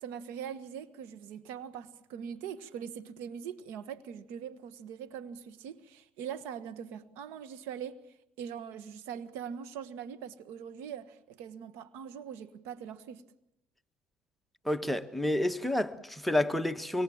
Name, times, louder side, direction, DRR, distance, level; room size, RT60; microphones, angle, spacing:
voice 1, 0.0-8.0 8.4-13.2, right 8 dB, 80° right, 1.5 m, -42 dB
voice 2, 14.6-17.0, left 1 dB, ahead, 1.3 m, -29 dB
25.0 x 24.5 x 7.2 m
supercardioid pair, 95°, 4 cm